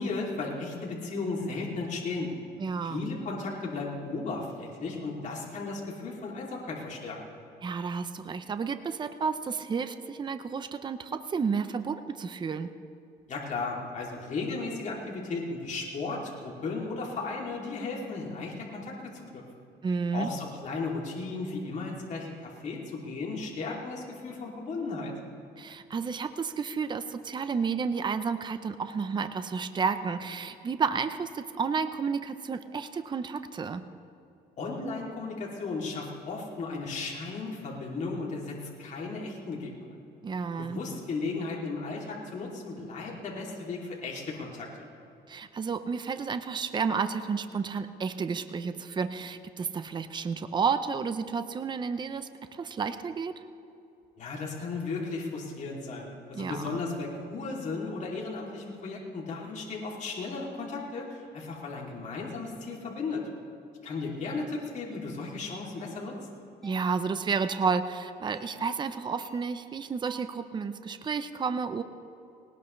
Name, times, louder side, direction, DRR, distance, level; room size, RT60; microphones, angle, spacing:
voice 1, 0.0-2.3 2.8-7.2 13.3-19.4 20.1-25.1 34.6-39.9 40.6-44.8 54.2-63.2 63.8-66.1, left 3 dB, 45° left, -3 dB, 2.9 m, -35 dB
voice 2, 2.6-3.1 7.6-12.7 19.8-20.3 25.6-33.8 40.2-40.8 45.3-53.3 56.3-56.8 66.6-71.8, right 5 dB, 25° right, 10 dB, 0.7 m, -31 dB
sound 1, 64.1-64.2 64.9-65.2 65.8-66.0 66.6-66.9 67.5-67.8 68.3-68.6 69.2-69.5 70.0-70.4, right 2 dB, ahead, 4.3 m, -52 dB
19.5 x 19.0 x 3.3 m, 2.7 s
cardioid pair, 110°, 17 cm